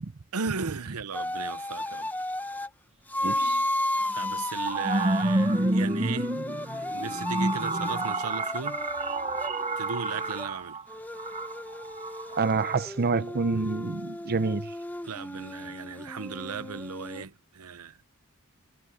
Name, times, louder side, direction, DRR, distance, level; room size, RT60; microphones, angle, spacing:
voice 1, 0.3-2.1 4.1-6.4 6.7-8.8 9.8-10.8 15.0-18.0, right 5 dB, 85° right, 0.8 m, -36 dB
sound 1, 1.1-2.7 3.1-10.5 10.9-17.2, left 1 dB, 10° left, 0.9 m, -34 dB
voice 2, 3.2-3.6 12.3-14.7, right 4 dB, 45° right, 0.6 m, -28 dB
sound 2, 3.4-3.5 4.2-12.8, right 2 dB, 30° right, 1.3 m, -29 dB
head